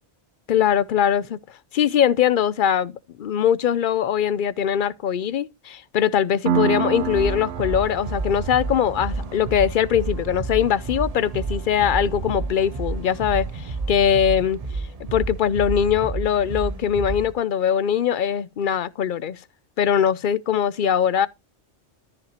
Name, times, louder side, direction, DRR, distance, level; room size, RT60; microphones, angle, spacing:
voice 1, 0.5-1.4 1.7-2.9 3.2-14.6 15.1-19.4 19.8-21.3, left 8 dB, 55° left, 0.6 m, -21 dB
Piano, 6.5-13.8, right 7 dB, 85° right, 1.1 m, -31 dB
sound 1, 7.0-17.3, right 3 dB, 35° right, 0.8 m, -30 dB
13.5 x 5.1 x 3.0 m
omnidirectional pair, 1.2 m